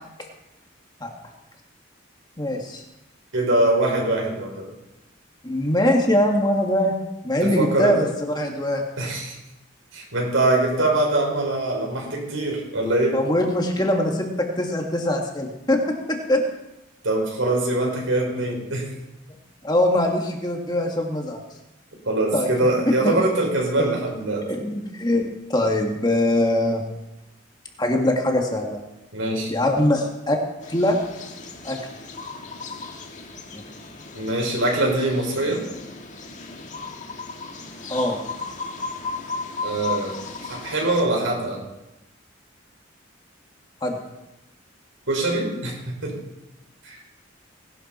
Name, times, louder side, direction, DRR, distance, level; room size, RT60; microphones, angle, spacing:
voice 1, 2.4-2.8 5.4-7.0 7.2-8.1 8.3-8.8 10.5-10.6 13.1-16.4 19.6-21.4 22.3-22.5 22.9-23.1 23.8-23.9 24.5-26.8 27.8-28.8 29.5-30.4 30.7-31.0 31.6-31.8 37.9-38.2 43.8-44.0, left 1 dB, 20° left, 2 dB, 1.9 m, -22 dB
voice 2, 3.3-4.7 7.4-8.0 9.0-9.4 9.9-13.2 17.0-18.9 22.1-24.5 29.1-29.5 34.1-35.6 39.6-40.1 40.5-41.6 45.1-46.2 46.8-47.0, right 2 dB, 90° right, -1 dB, 5.6 m, -23 dB
sound 1, 30.6-41.0, left 4 dB, 40° left, 1.8 m, -35 dB
19.0 x 12.0 x 4.4 m, 0.96 s
head